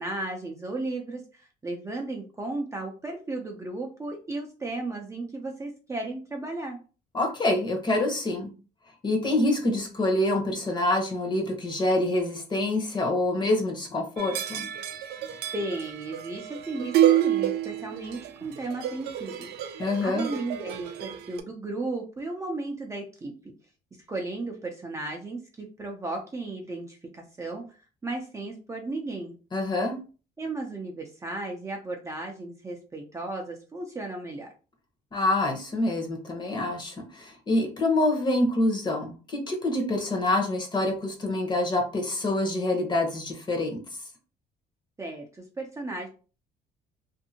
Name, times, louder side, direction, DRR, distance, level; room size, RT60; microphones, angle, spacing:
voice 1, 0.0-6.8 15.5-23.3 24.1-27.8 28.0-29.3 30.4-34.5 45.0-46.1, right 2 dB, 20° right, 1 dB, 0.5 m, -35 dB
voice 2, 7.1-8.5 9.0-14.7 19.8-20.3 29.5-30.0 35.1-43.8, left 2 dB, 25° left, 3 dB, 0.9 m, -26 dB
sound 1, 14.2-21.4, right 12 dB, 70° right, 0.4 m, -29 dB
2.6 x 2.6 x 2.7 m, 0.36 s
cardioid pair, 110°, 17 cm